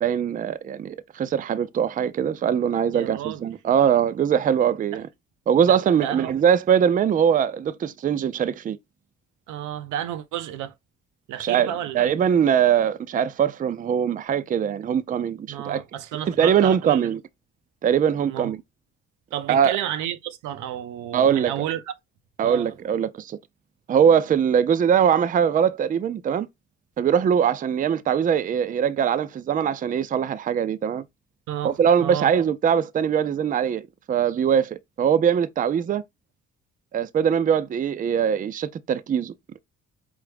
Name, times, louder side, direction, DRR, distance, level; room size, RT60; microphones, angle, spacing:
voice 1, 0.0-5.1 5.5-8.8 11.4-15.8 16.3-17.2 17.8-18.6 19.5-19.8 21.1-21.5 22.4-23.4 23.9-26.5 27.0-31.0 31.6-36.0 36.9-39.6, right 8 dB, 30° right, 0.3 m, -22 dB
voice 2, 2.9-3.5 4.9-5.0 5.6-6.3 9.5-10.7 11.3-12.1 15.5-17.0 18.3-18.5 19.3-21.9 22.4-22.7 31.5-32.3, right 11 dB, 90° right, 0.5 m, -31 dB
4.8 x 2.1 x 3.2 m
cardioid pair, 90°, 30 cm